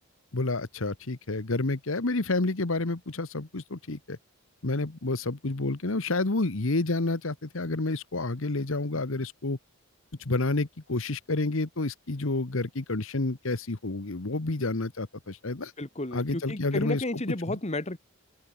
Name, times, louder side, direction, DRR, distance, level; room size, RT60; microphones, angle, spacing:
voice 1, 0.3-4.2 4.6-9.6 10.2-15.7 16.1-17.2 17.5-17.6, left 2 dB, 65° left, 1.3 m, -29 dB
voice 2, 15.8-18.0, left 1 dB, 30° left, 1.6 m, -32 dB
open air
head